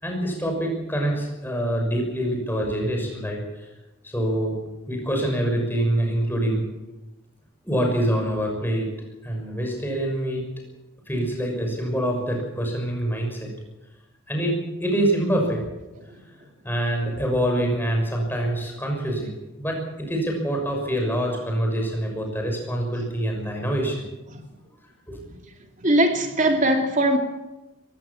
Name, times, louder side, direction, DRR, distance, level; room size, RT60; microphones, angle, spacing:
voice 1, 0.0-3.7 4.0-4.6 4.9-6.6 7.6-8.9 9.2-10.4 11.1-13.5 14.3-15.6 16.6-19.3 19.6-24.0 25.1-25.2, right 1 dB, 10° left, 6.0 m, -25 dB
voice 2, 25.8-27.2, right 1 dB, 35° right, 2.9 m, -21 dB
22.5 x 17.0 x 7.2 m
head